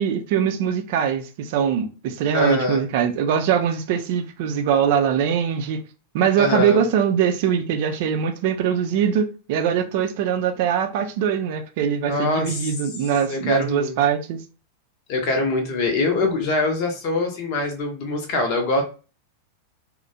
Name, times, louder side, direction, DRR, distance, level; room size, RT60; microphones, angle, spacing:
voice 1, 0.0-5.8 6.1-14.4, right 8 dB, 50° right, 0.5 m, -22 dB
voice 2, 2.3-2.8 6.4-6.8 12.0-12.7 13.3-13.9 15.1-18.8, left 2 dB, 45° left, 0.7 m, -23 dB
3.1 x 2.1 x 2.6 m
figure-of-eight pair, 90°, 0 cm